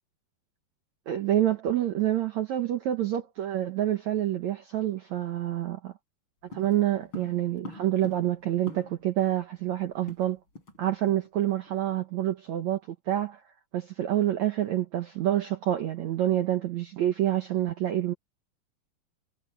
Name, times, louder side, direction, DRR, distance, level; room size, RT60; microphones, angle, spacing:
voice 1, 1.1-5.9 6.5-10.4 10.8-13.4 13.7-18.1, right 12 dB, 80° right, 1.6 m, -27 dB
sound 1, 6.5-9.2 9.4-9.5 9.8-10.8 11.1-11.3 11.7-11.9, left 1 dB, 30° left, 8.0 m, -44 dB
omnidirectional pair, 4.9 m